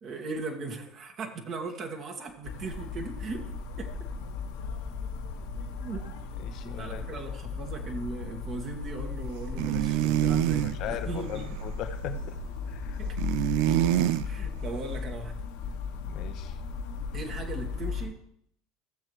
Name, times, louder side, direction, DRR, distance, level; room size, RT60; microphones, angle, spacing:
voice 1, 0.0-3.5 3.8-3.9 5.8-6.1 6.6-11.6 13.0-13.2 14.2-15.4 17.1-18.2, right 3 dB, 40° right, 3 dB, 1.8 m, -38 dB
sound 1, 2.4-18.1, left 5 dB, 70° left, 1.8 m, -36 dB
voice 2, 6.4-7.2 10.6-12.4 12.7-13.0 13.6-13.7 14.0-14.4 16.0-16.6, left 9 dB, 50° left, 8 dB, 1.0 m, -39 dB
sound 2, 9.6-10.8 13.2-14.3, right 14 dB, 60° right, 0.5 m, -25 dB
15.5 x 7.4 x 3.2 m, 0.70 s
hypercardioid pair, 75°, 0 cm